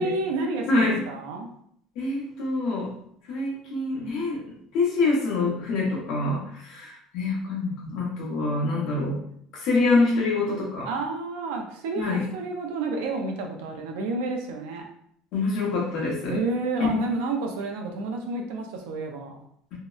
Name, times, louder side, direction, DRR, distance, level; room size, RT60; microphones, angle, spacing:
voice 1, 0.0-1.5 10.8-14.8 16.3-19.4, right 3 dB, 90° right, 2 dB, 0.5 m, -30 dB
voice 2, 2.0-2.9 3.3-4.4 4.7-9.2 9.6-10.9 12.0-12.2 15.3-16.4, left 3 dB, 55° left, -3 dB, 0.8 m, -25 dB
2.7 x 2.0 x 2.3 m, 0.69 s
cardioid pair, 160°, 0 cm